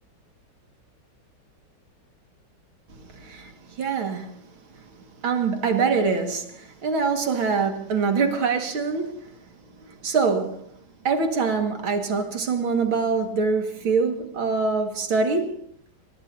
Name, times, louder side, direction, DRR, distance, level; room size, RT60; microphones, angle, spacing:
voice 1, 3.0-4.4 5.2-9.3 9.8-10.7 11.0-15.6, right 4 dB, 80° right, 2.8 m, -24 dB
24.0 x 20.0 x 2.8 m
omnidirectional pair, 2.2 m